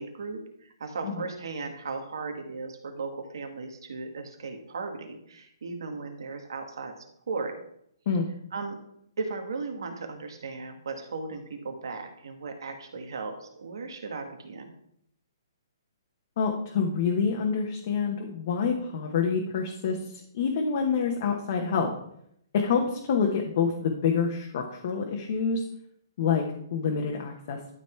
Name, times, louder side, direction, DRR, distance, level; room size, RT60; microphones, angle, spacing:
voice 1, 0.0-6.9 7.3-7.6 8.5-8.8 9.2-14.7, right 4 dB, 75° right, 5 dB, 1.7 m, -36 dB
voice 2, 16.4-20.0 20.3-21.9 22.5-25.6 26.2-26.4 26.7-27.6, left 6 dB, 40° left, 1 dB, 1.1 m, -27 dB
12.0 x 4.1 x 4.5 m, 0.72 s
hypercardioid pair, 170°, 2 cm